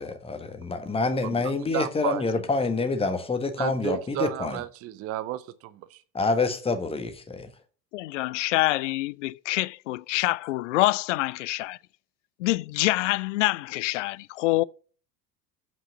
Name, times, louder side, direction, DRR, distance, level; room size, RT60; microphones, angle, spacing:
voice 1, 0.0-4.6 6.1-7.5, left 3 dB, 10° left, 1.3 m, -27 dB
voice 2, 1.2-2.2 3.6-6.0, right 14 dB, 30° right, 0.7 m, -33 dB
voice 3, 7.9-11.8 12.4-14.6, left 18 dB, 50° left, 0.4 m, -26 dB
7.6 x 6.2 x 7.9 m
figure-of-eight pair, 75°, 50 cm